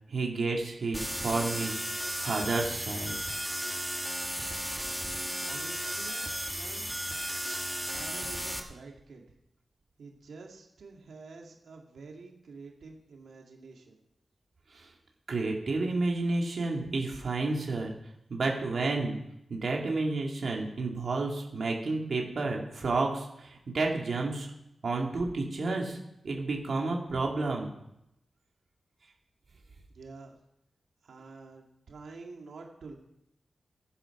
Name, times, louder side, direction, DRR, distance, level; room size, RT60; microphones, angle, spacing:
voice 1, 0.1-3.1 14.7-14.9 15.3-17.9 18.3-19.2 19.5-24.5 24.8-26.0 26.2-27.7, right 3 dB, 55° right, -1 dB, 2.2 m, -31 dB
sound 1, 0.9-8.6, equal, ahead, 1.4 m, -34 dB
voice 2, 5.4-6.3 6.5-6.9 7.9-9.2 10.0-14.0 29.9-30.4 31.1-32.9, right 4 dB, 90° right, 1 dB, 2.1 m, -48 dB
15.5 x 10.0 x 5.9 m, 0.83 s
wide cardioid pair, 175°, 0 cm